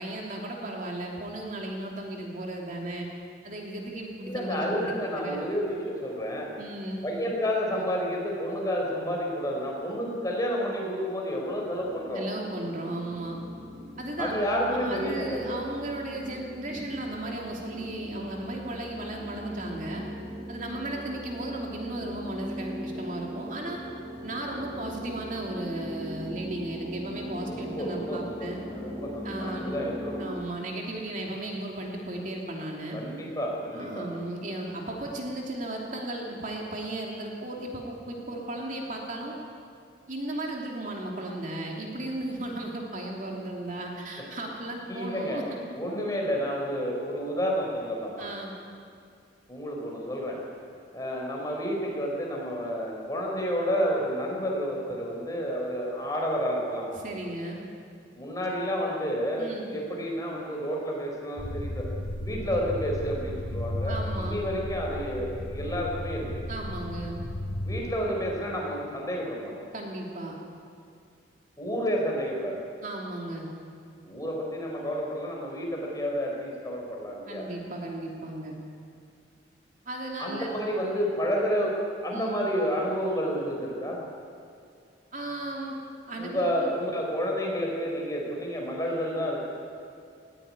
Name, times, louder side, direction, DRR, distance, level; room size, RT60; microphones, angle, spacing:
voice 1, 0.0-3.1 3.4-5.4 6.6-7.0 12.1-13.4 14.0-14.4 14.7-20.0 20.5-23.8 24.2-28.6 29.2-29.8 30.2-33.0 33.7-39.4 40.1-45.6 48.2-48.5 57.0-57.6 59.4-59.7 63.8-64.4 66.5-67.2 69.7-70.3 72.8-73.5 77.3-78.5 79.8-80.5 82.1-82.4 85.1-85.8 86.1-86.7, right 1 dB, 45° right, -1 dB, 3.0 m, -35 dB
voice 2, 4.2-6.5 7.0-12.2 14.2-15.6 27.4-30.2 32.9-34.1 44.2-44.3 44.9-45.4 45.7-48.3 49.5-50.4 50.9-56.9 58.1-61.9 62.2-66.4 67.6-69.6 71.6-72.6 74.0-77.5 80.2-81.8 82.0-84.0 86.2-89.5, equal, 20° left, -1 dB, 4.8 m, -30 dB
sound 1, 11.4-30.3, equal, 20° right, 6.0 m, -40 dB
sound 2, 61.4-67.8, left 1 dB, 85° left, 4.9 m, -34 dB
19.0 x 16.5 x 9.8 m, 2.3 s
head